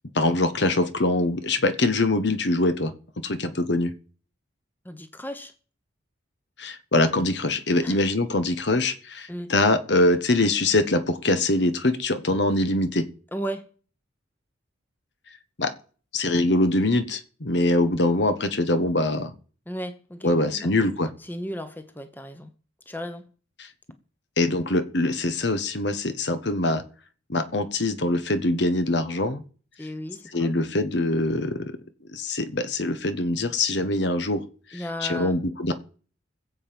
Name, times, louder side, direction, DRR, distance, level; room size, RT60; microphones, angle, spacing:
voice 1, 0.1-3.9 6.6-13.1 15.6-15.7 16.1-19.3 20.2-21.1 23.6-23.7 24.4-26.8 27.3-29.4 30.3-31.8 32.1-34.4 34.7-35.7, left 2 dB, 60° left, 1.3 m, -23 dB
voice 2, 4.8-5.5 7.8-8.0 9.3-9.5 13.3-13.6 19.7-20.7 21.3-22.5 22.9-23.3 29.8-30.5 34.7-35.3, equal, 10° left, 1.0 m, -35 dB
20.0 x 7.8 x 5.3 m
head